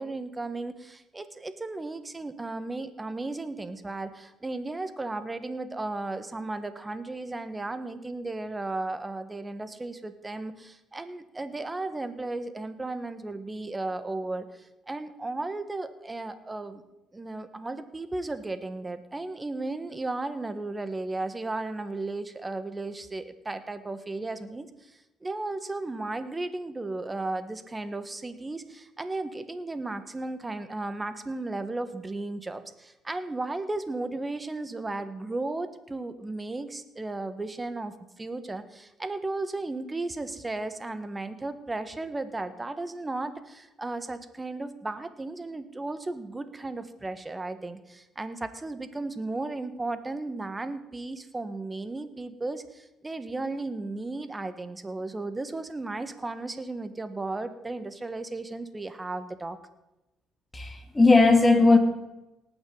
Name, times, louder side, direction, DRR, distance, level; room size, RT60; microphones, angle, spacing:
voice 1, 0.0-16.8 17.1-59.6, right 2 dB, 20° right, 11 dB, 1.5 m, -35 dB
voice 2, 60.5-61.8, left 3 dB, 20° left, 4 dB, 2.8 m, -18 dB
19.0 x 8.8 x 4.0 m, 0.95 s
hypercardioid pair, 55°, 0 cm